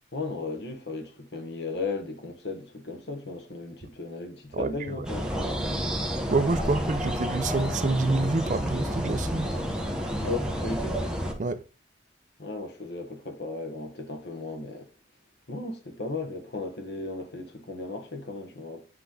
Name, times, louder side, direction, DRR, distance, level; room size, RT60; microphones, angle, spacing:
voice 1, 0.1-5.3 6.6-6.7 10.2-11.0 12.4-14.9 15.5-18.9, left 3 dB, 70° left, 1.3 m, -36 dB
voice 2, 4.5-5.1 6.3-9.5 11.4-11.6, right 3 dB, 45° right, 0.5 m, -27 dB
sound 1, 5.0-11.3, equal, 5° right, 1.0 m, -30 dB
7.9 x 3.4 x 3.7 m
head